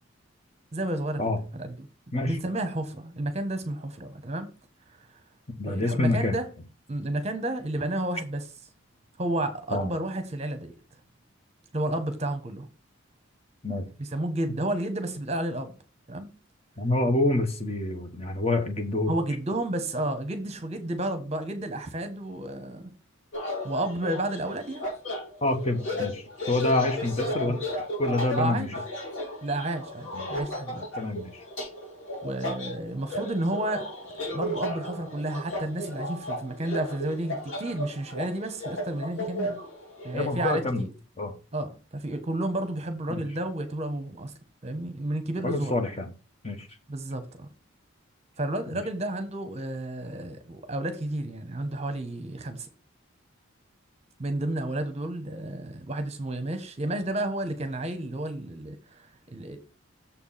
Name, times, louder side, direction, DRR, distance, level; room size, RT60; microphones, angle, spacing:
voice 1, 0.7-1.9 2.2-4.5 5.7-6.5 6.9-8.4 9.2-10.7 11.7-12.7 14.0-15.7 16.1-16.3 19.1-22.9 23.6-24.8 27.5-27.6 28.3-28.7 29.4-30.9 32.2-33.9 34.3-39.6 40.0-40.9 41.5-44.3 44.6-45.8 46.9-47.5 48.4-52.7 54.2-59.6, right 1 dB, 30° right, 1.1 m, -31 dB
voice 2, 5.6-6.4 9.7-9.9 13.6-13.9 16.8-19.1 25.4-27.6 28.0-28.7 30.1-30.3 31.0-31.4 40.1-40.9 41.2-41.3 43.1-43.2 45.4-46.1 46.4-46.7 48.7-48.8, left 2 dB, 30° left, 1.1 m, -27 dB
sound 1, 23.3-40.5, equal, 65° left, 3.9 m, -35 dB
7.1 x 4.6 x 5.7 m
head